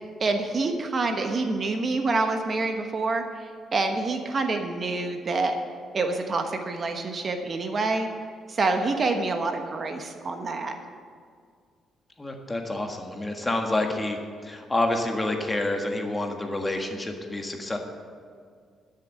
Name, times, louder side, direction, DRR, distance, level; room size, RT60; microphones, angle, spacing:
voice 1, 0.2-5.5 5.9-8.1 8.5-10.7, right 3 dB, 40° right, 5 dB, 1.2 m, -27 dB
voice 2, 12.2-17.8, left 2 dB, 20° left, 3 dB, 1.6 m, -28 dB
12.0 x 6.8 x 8.6 m, 2.1 s
cardioid pair, 90°, 0 cm